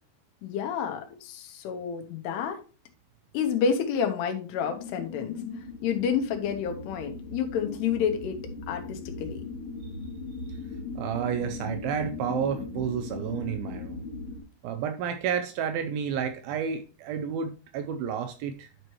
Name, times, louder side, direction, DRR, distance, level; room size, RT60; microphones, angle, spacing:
voice 1, 0.4-2.6 3.3-5.4 5.8-8.4 8.7-9.4, left 7 dB, 90° left, 5 dB, 3.1 m, -29 dB
sound 1, 4.6-14.4, left 3 dB, 75° left, 3.6 m, -38 dB
voice 2, 11.0-14.0 14.6-18.7, right 8 dB, 80° right, 7 dB, 2.3 m, -31 dB
11.5 x 4.6 x 3.1 m, 0.33 s
omnidirectional pair, 4.6 m